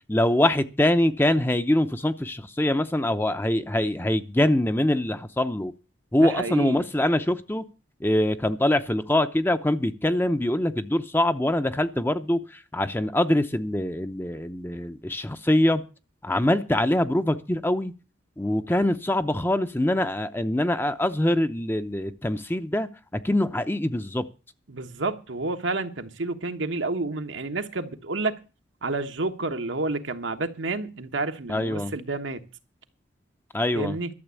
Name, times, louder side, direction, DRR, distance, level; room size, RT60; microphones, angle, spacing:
voice 1, 0.1-5.7 6.1-7.6 8.0-15.8 16.2-17.9 18.4-24.3 31.5-31.9 33.5-34.0, left 1 dB, 10° left, 0.6 m, -24 dB
voice 2, 6.2-6.8 24.7-28.4 28.8-32.4 33.8-34.1, right 3 dB, 80° right, 1.3 m, -30 dB
12.5 x 7.3 x 8.2 m
head